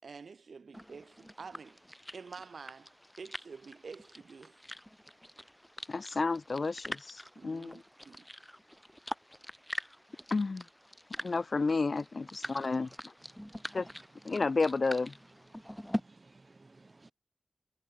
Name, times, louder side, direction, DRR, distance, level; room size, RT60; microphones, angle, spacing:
voice 1, 0.0-1.9 2.1-4.6 7.4-8.3, right 5 dB, 70° right, 3.9 m, -48 dB
sound 1, 0.7-16.0, equal, 5° left, 7.8 m, -44 dB
voice 2, 5.9-7.8 10.3-10.6 11.2-12.9 13.7-13.9 14.2-15.1, left 3 dB, 45° left, 0.5 m, -31 dB
voice 3, 12.4-12.9 13.3-14.1 14.3-14.4 15.5-17.1, right 3 dB, 35° right, 2.1 m, -59 dB
wide cardioid pair, 105°, 0 cm